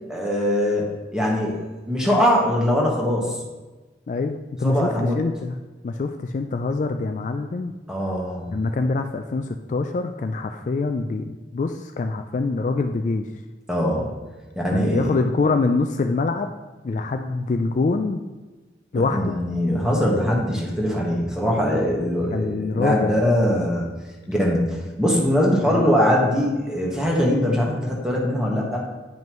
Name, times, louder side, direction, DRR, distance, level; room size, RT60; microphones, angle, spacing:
voice 1, 0.1-1.6 1.9-3.4 4.6-5.2 7.9-8.6 13.7-14.1 14.5-15.1 19.1-23.9 24.3-28.8, equal, 5° right, -3 dB, 1.3 m, -22 dB
voice 2, 4.1-5.6 5.8-7.7 8.5-13.3 14.7-16.5 16.8-18.2 18.9-19.4 22.3-23.1 25.6-25.9, left 3 dB, 45° left, 6 dB, 0.3 m, -24 dB
9.2 x 5.3 x 3.0 m, 1.2 s
head